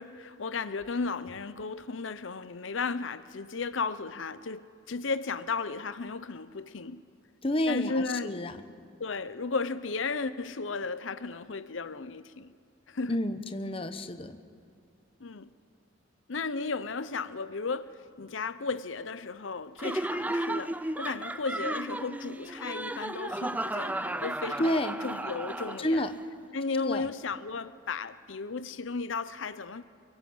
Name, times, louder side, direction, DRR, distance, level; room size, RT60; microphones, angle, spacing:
voice 1, 0.0-7.0 7.7-8.4 9.0-12.5 12.9-13.2 15.2-15.5 16.3-24.7 25.0-26.0 26.5-29.8, left 4 dB, 85° left, 0.7 m, -34 dB
voice 2, 7.4-8.6 13.1-14.4 24.6-25.0 25.8-26.1 26.8-27.1, left 1 dB, 30° left, 1.0 m, -30 dB
Laughter, 19.8-26.1, right 1 dB, 10° right, 0.5 m, -34 dB
24.0 x 22.0 x 7.9 m
head